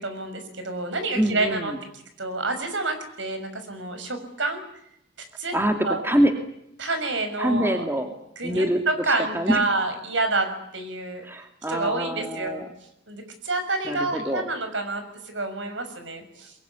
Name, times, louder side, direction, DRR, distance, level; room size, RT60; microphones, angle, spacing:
voice 1, 0.0-1.7 2.2-4.6 5.4-5.5 5.8-6.0 6.8-7.8 8.4-11.3 11.7-12.6 13.1-16.5, right 2 dB, 75° right, 8 dB, 6.2 m, -28 dB
voice 2, 1.1-1.8 5.5-6.3 7.4-8.1 8.4-9.6 11.2-12.7 13.9-14.4, equal, 10° right, 5 dB, 2.6 m, -25 dB
23.5 x 22.5 x 9.7 m, 0.75 s
head